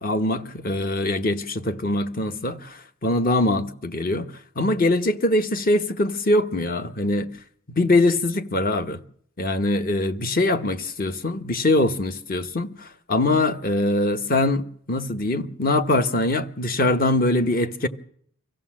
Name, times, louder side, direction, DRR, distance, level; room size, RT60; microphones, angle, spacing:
voice 1, 0.0-7.3 7.7-9.0 9.4-17.9, left 2 dB, 40° left, 1.0 m, -23 dB
24.5 x 15.5 x 7.5 m
head